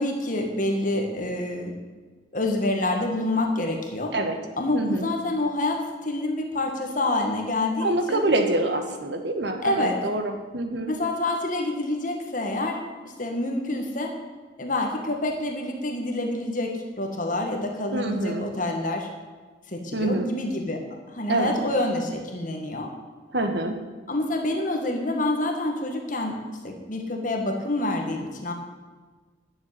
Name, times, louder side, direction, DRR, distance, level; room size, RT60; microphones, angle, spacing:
voice 1, 0.0-1.7 2.3-4.1 4.6-8.2 9.6-10.0 10.9-14.1 14.6-19.1 19.7-20.8 21.1-22.9 24.1-26.4 26.6-28.5, left 2 dB, 40° left, 3 dB, 1.5 m, -27 dB
voice 2, 4.7-5.1 7.8-10.9 17.9-18.5 19.9-20.3 21.3-21.6 23.3-23.8, right 2 dB, 60° right, 6 dB, 1.4 m, -26 dB
10.5 x 7.3 x 9.2 m, 1.4 s
head